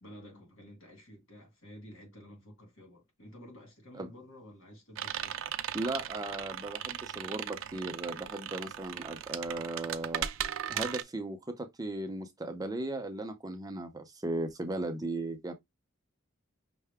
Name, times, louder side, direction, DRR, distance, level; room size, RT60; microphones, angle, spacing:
voice 1, 0.0-5.4, equal, 70° left, 2.1 m, -52 dB
sound 1, 4.9-11.0, right 10 dB, 70° right, 0.4 m, -37 dB
voice 2, 5.7-10.3 10.7-15.5, right 2 dB, 20° right, 0.5 m, -37 dB
5.6 x 2.0 x 3.4 m
head